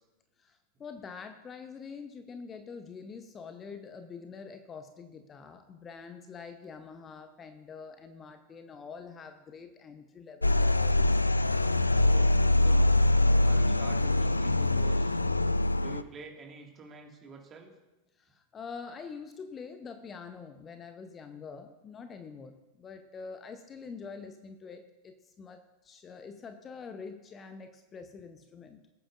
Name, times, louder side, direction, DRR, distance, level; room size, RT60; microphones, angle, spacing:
voice 1, 0.4-11.2 18.2-28.8, left 5 dB, 25° left, 8 dB, 0.8 m, -45 dB
sound 1, 10.4-16.0, left 1 dB, 85° left, 0.3 m, -24 dB
voice 2, 11.9-13.0 13.4-15.2 15.8-17.7, right 4 dB, 25° right, 2 dB, 2.0 m, -47 dB
21.0 x 8.7 x 2.5 m, 1.0 s
figure-of-eight pair, 90°, 0 cm